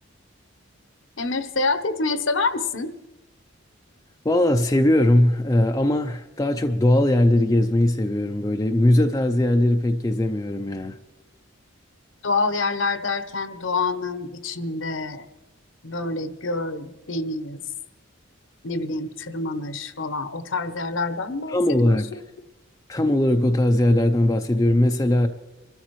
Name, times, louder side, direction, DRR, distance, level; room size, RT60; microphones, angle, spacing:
voice 1, 1.2-2.9 12.2-15.2 15.8-17.6 18.6-22.0, left 3 dB, 65° left, 0.9 m, -27 dB
voice 2, 4.2-11.0 21.5-22.1 22.9-25.3, left 1 dB, 15° left, 0.5 m, -20 dB
26.0 x 13.0 x 3.1 m
head